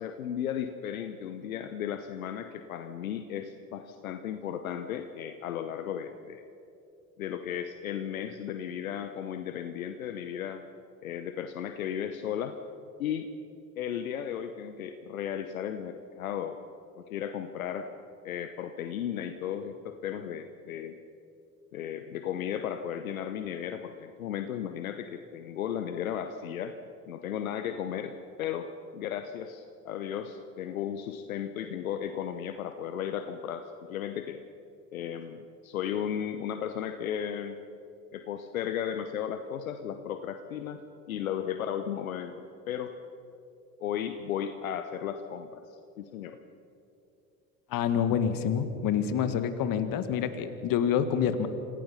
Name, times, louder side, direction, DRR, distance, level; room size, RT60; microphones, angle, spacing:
voice 1, 0.0-6.5 7.2-10.6 11.0-12.6 13.0-13.3 13.8-16.6 17.0-17.9 18.2-21.0 21.7-26.8 27.1-34.4 34.9-37.6 38.1-40.8 41.1-42.9 43.8-46.4, left 9 dB, 80° left, 8 dB, 1.0 m, -35 dB
voice 2, 47.7-51.5, left 8 dB, 55° left, 10 dB, 1.8 m, -27 dB
27.0 x 17.5 x 5.7 m, 2.7 s
hypercardioid pair, 65°, 41 cm